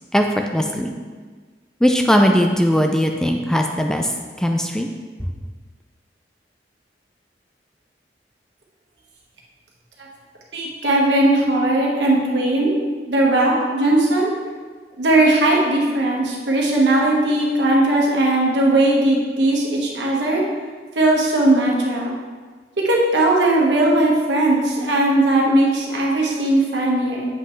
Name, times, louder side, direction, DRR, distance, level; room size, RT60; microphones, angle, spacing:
voice 1, 0.5-0.9 1.8-4.1 4.4-4.9, equal, 5° left, 3 dB, 0.4 m, -18 dB
voice 2, 10.5-12.8 13.1-14.3 14.9-20.4 20.9-22.2 22.8-27.3, right 1 dB, 85° right, -2 dB, 1.4 m, -18 dB
7.6 x 5.6 x 3.2 m, 1.5 s
head